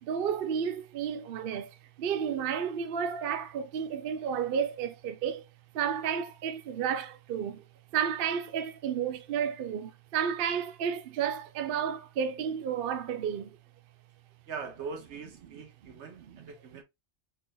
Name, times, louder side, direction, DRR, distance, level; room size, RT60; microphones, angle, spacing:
voice 1, 0.0-1.7 2.0-5.5 5.7-7.6 7.9-13.6 16.3-16.5, right 8 dB, 60° right, 0.7 m, -32 dB
voice 2, 14.5-16.8, right 5 dB, 80° right, 1.2 m, -41 dB
4.4 x 2.4 x 3.8 m
omnidirectional pair, 1.2 m